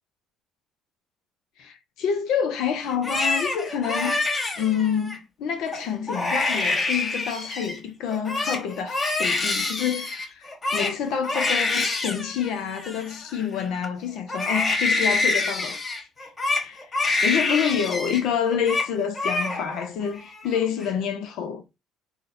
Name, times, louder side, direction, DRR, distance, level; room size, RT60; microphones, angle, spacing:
voice 1, 1.6-15.8 16.6-21.6, left 8 dB, 65° left, 0.4 m, -28 dB
Crying sobbing, 2.9-5.2 5.7-5.8 6.1-7.8 8.1-13.9 14.3-18.2 18.5-18.9 19.2-19.9 20.2-20.9, left 3 dB, 30° left, 1.0 m, -26 dB
5.4 x 2.1 x 2.5 m
hypercardioid pair, 55°, 0 cm